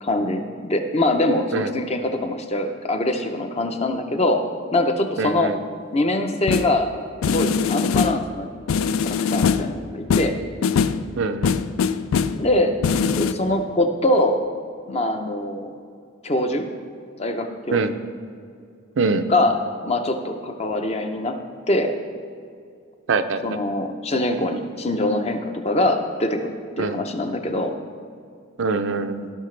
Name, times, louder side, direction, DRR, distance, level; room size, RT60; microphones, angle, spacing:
voice 1, 0.0-4.4 4.7-5.5 5.9-6.9 7.3-8.5 9.0-10.4 12.3-12.8 13.2-14.4 14.9-15.7 16.2-16.6 17.2-17.8 19.3-19.6 19.8-21.4 21.7-21.9 23.4-27.7, left 1 dB, 30° left, 5 dB, 0.6 m, -23 dB
voice 2, 5.2-5.6 11.2-11.6 17.7-17.9 19.0-19.2 23.1-23.6 26.8-27.0 28.6-29.3, right 4 dB, 65° right, 9 dB, 0.5 m, -23 dB
sound 1, 6.5-6.8 7.2-8.3 8.7-9.8 10.1-11.1 11.4-12.5 12.8-13.3, left 6 dB, 85° left, 0.4 m, -22 dB
15.5 x 5.8 x 3.3 m, 2.3 s
head